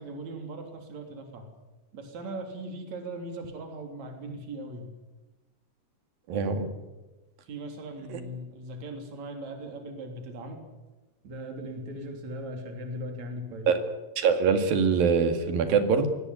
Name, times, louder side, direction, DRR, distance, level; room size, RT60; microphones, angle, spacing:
voice 1, 0.0-1.5 1.9-4.9 7.4-10.6 11.2-13.7, right 1 dB, 50° right, 4 dB, 4.6 m, -39 dB
voice 2, 6.3-6.7 8.1-8.2 13.7-13.8 14.2-16.1, right 5 dB, 80° right, 8 dB, 3.9 m, -23 dB
23.0 x 18.0 x 9.6 m, 1.1 s
omnidirectional pair, 4.1 m